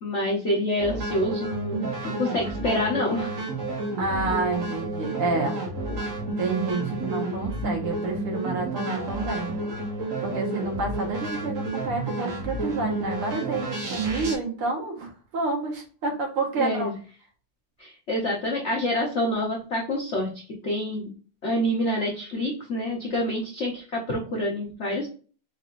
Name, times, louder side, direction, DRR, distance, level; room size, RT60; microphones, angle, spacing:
voice 1, 0.0-3.3 16.6-16.9 17.8-20.3 20.6-21.1 21.4-25.1, left 1 dB, 70° left, -2 dB, 0.6 m, -27 dB
sound 1, 0.8-14.4, right 2 dB, 45° right, 1.1 m, -31 dB
voice 2, 4.0-5.6 6.1-9.5 10.2-16.9, right 3 dB, 75° right, 1 dB, 2.0 m, -29 dB
4.7 x 3.0 x 2.5 m, 0.38 s
omnidirectional pair, 2.4 m